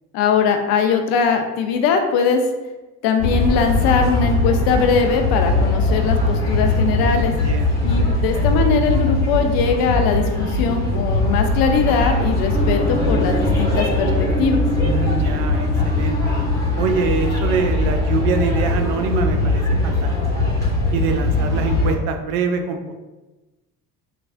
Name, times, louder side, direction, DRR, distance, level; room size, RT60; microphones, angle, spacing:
voice 1, 0.1-2.4 3.0-7.3 7.8-14.1 14.4-14.6, left 5 dB, 50° left, 5 dB, 0.5 m, -20 dB
sound 1, 3.2-21.9, left 2 dB, 5° left, 1.3 m, -20 dB
voice 2, 7.3-7.7 14.8-16.2 16.8-20.2 20.9-22.8, right 5 dB, 65° right, 6 dB, 0.5 m, -24 dB
sound 2, 12.5-20.8, equal, 85° left, 0.7 m, -28 dB
3.4 x 2.3 x 2.5 m, 1.1 s
hypercardioid pair, 65°, 46 cm